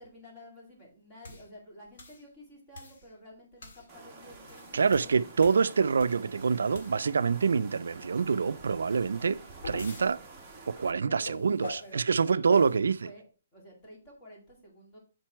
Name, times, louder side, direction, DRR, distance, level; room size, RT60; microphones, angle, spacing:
voice 1, 0.0-5.2 11.1-11.4 11.8-12.7 13.0-13.2 13.5-15.0, equal, 15° left, 2.2 m, -51 dB
sound 1, 1.2-1.5 2.0-2.2 2.7-3.1 3.6-3.9 4.3-6.3 6.7-7.2 9.2-10.1 11.2-11.9 12.5-12.8, left 2 dB, 55° left, 1.8 m, -44 dB
sound 2, 3.9-10.9, right 3 dB, 10° right, 1.3 m, -49 dB
voice 2, 4.7-9.4 9.6-10.2 10.7-13.0, right 5 dB, 85° right, 0.4 m, -26 dB
7.6 x 4.5 x 4.5 m
hypercardioid pair, 175°, 0 cm